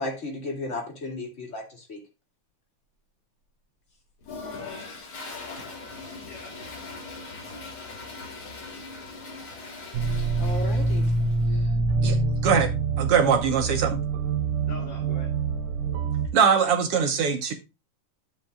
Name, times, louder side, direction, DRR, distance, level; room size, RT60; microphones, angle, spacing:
voice 1, 0.0-2.0 10.4-11.1, left 2 dB, 25° left, 2.2 m, -34 dB
Toilet flush, 4.2-11.5, left 3 dB, 45° left, 2.7 m, -40 dB
voice 2, 6.2-7.4 11.5-11.6 14.6-15.3, left 2 dB, 85° left, 3.9 m, -45 dB
sound 1, 9.9-16.3, right 3 dB, 85° right, 2.3 m, -25 dB
voice 3, 12.0-12.7 13.0-14.0 16.3-17.5, right 6 dB, 70° right, 1.4 m, -22 dB
11.0 x 7.7 x 2.3 m
omnidirectional pair, 3.7 m